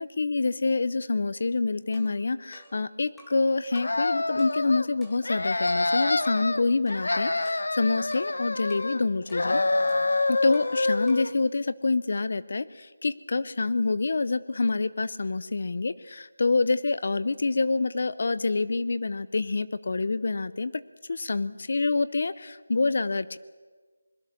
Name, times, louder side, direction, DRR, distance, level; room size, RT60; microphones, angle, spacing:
voice 1, 0.0-9.6 10.3-20.8 21.1-23.4, left 3 dB, 45° left, 16 dB, 0.6 m, -27 dB
sound 1, 1.9-3.5 3.7-4.0 4.4-5.9 6.2-6.5 6.9-8.3 8.7-8.9 9.3-10.8 11.1-11.4, equal, ahead, 1.9 m, -54 dB
sound 2, 3.7-4.9 5.2-6.6 6.9-9.0 9.3-11.3, left 2 dB, 70° left, 1.2 m, -27 dB
23.5 x 21.5 x 6.5 m, 1.4 s
figure-of-eight pair, 175°, 0 cm